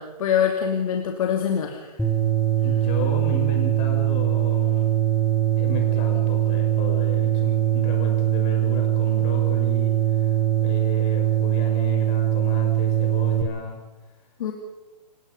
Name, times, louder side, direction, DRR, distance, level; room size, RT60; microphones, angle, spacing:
voice 1, 0.0-1.9 14.4-14.5, left 8 dB, 55° left, 3 dB, 2.6 m, -24 dB
sound 1, 2.0-13.4, right 13 dB, ahead, 1.7 m, -21 dB
voice 2, 2.6-4.9 5.6-10.3 10.6-13.8, left 4 dB, 30° left, 3 dB, 6.1 m, -34 dB
28.5 x 16.5 x 5.5 m, 1.1 s
hypercardioid pair, 145°, 21 cm